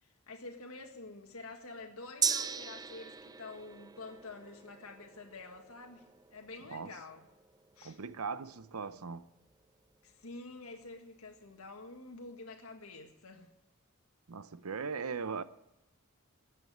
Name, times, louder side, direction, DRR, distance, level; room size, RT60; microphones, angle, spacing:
voice 1, 0.0-7.3 7.8-8.0 10.0-13.5, left 3 dB, 75° left, 1.8 m, -48 dB
Gong, 2.2-10.0 10.3-10.4, right 6 dB, 20° right, 0.4 m, -40 dB
voice 2, 7.8-9.2 14.3-15.4, right 5 dB, 80° right, 0.8 m, -39 dB
14.0 x 8.9 x 9.1 m
head